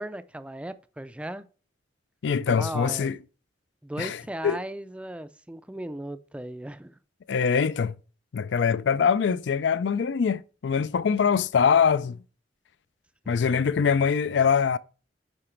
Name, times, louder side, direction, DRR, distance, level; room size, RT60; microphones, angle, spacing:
voice 1, 0.0-1.5 2.5-3.1 3.8-7.0 13.2-13.5, right 1 dB, 5° right, 0.4 m, -37 dB
voice 2, 2.2-3.2 4.0-4.2 4.4-4.6 7.3-8.0 8.3-12.2 13.3-14.8, left 6 dB, 70° left, 0.4 m, -23 dB
8.7 x 5.0 x 4.4 m
head